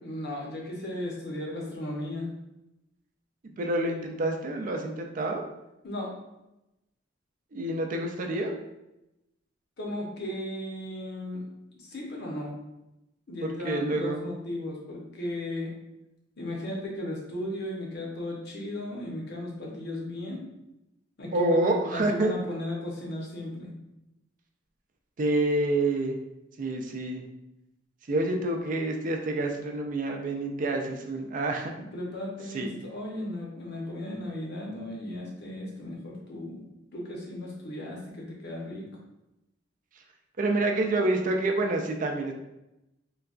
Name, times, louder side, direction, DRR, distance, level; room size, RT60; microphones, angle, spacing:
voice 1, 0.0-2.3 5.8-6.1 9.8-11.5 11.8-12.5 13.3-15.7 16.4-20.4 21.2-23.7 31.9-36.7 36.9-38.9, left 1 dB, 60° left, -2 dB, 0.8 m, -36 dB
voice 2, 3.6-5.4 7.5-8.6 13.4-14.2 21.3-22.3 25.2-26.2 26.6-27.3 28.1-31.7 32.5-32.7 40.4-42.3, right 2 dB, 45° right, 3 dB, 0.4 m, -27 dB
3.8 x 2.2 x 2.4 m, 0.92 s
head